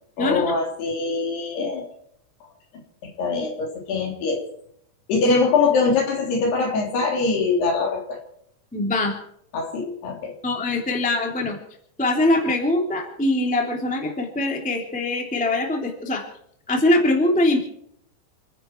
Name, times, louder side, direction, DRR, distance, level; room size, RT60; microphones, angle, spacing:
voice 1, 0.2-1.9 3.2-4.4 5.1-8.2 9.5-10.3, left 4 dB, 60° left, 1 dB, 5.4 m, -23 dB
voice 2, 8.7-9.2 10.4-11.6 12.0-16.2 16.7-17.6, left 2 dB, 5° left, 2 dB, 1.7 m, -22 dB
29.5 x 10.5 x 4.6 m, 0.68 s
omnidirectional pair, 5.3 m